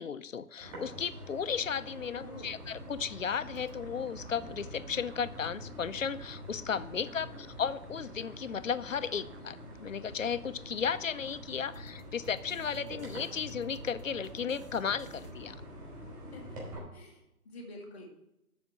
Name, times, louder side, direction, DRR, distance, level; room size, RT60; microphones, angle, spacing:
voice 1, 0.0-7.3 7.6-15.5, left 7 dB, 60° left, 13 dB, 0.7 m, -35 dB
sound 1, 0.6-16.8, equal, 20° right, 3.4 m, -46 dB
voice 2, 2.1-2.6 7.0-7.4 16.3-16.6 16.9-18.1, left 1 dB, 5° left, -14 dB, 0.7 m, -49 dB
sound 2, 3.5-15.3, right 3 dB, 45° right, 1.2 m, -56 dB
12.5 x 4.3 x 7.1 m, 0.88 s
figure-of-eight pair, 155°, 46 cm